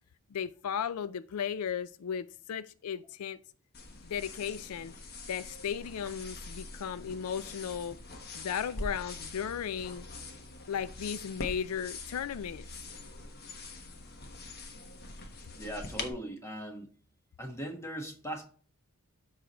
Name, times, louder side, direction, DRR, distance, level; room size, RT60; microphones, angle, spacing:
voice 1, 0.3-3.4 4.0-4.9 5.3-8.0 8.3-10.1 10.7-12.6, left 8 dB, 75° left, 14 dB, 0.4 m, -35 dB
sound 1, 3.7-16.1, left 2 dB, 45° left, 1.2 m, -44 dB
voice 2, 15.5-16.9 17.4-18.5, equal, 10° left, 3 dB, 1.4 m, -39 dB
12.5 x 4.8 x 3.0 m, 0.42 s
head